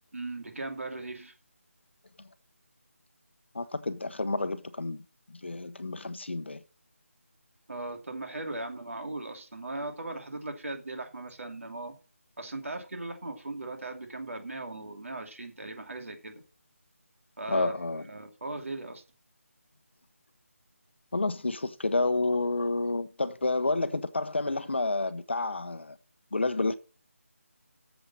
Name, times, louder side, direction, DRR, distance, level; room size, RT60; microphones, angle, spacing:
voice 1, 0.1-1.3 7.7-12.0 12.4-16.4 17.4-17.7 18.1-19.0, right 2 dB, 65° right, 2.7 m, -38 dB
voice 2, 3.5-5.0 5.3-6.6 17.5-18.1 21.1-26.0 26.3-26.8, left 2 dB, 50° left, 0.8 m, -29 dB
8.4 x 7.3 x 7.3 m
figure-of-eight pair, 180°, 8 cm